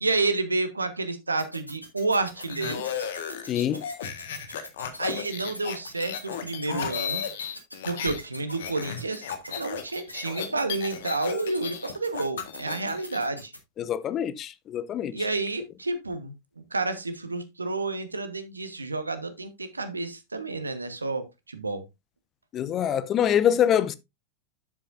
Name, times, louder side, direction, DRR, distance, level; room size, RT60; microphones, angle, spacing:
voice 1, 0.0-2.8 5.0-7.2 7.8-13.5 15.1-16.3 16.7-21.8, right 3 dB, 80° right, 1.3 m, -30 dB
sound 1, 1.4-13.6, equal, 85° left, 2.3 m, -42 dB
sound 2, 2.4-8.2 8.5-13.2, left 7 dB, 60° left, 1.5 m, -35 dB
voice 2, 3.5-3.8 13.8-15.1 22.5-23.9, left 9 dB, 30° left, 0.7 m, -25 dB
9.9 x 7.8 x 2.6 m
figure-of-eight pair, 90°, 0 cm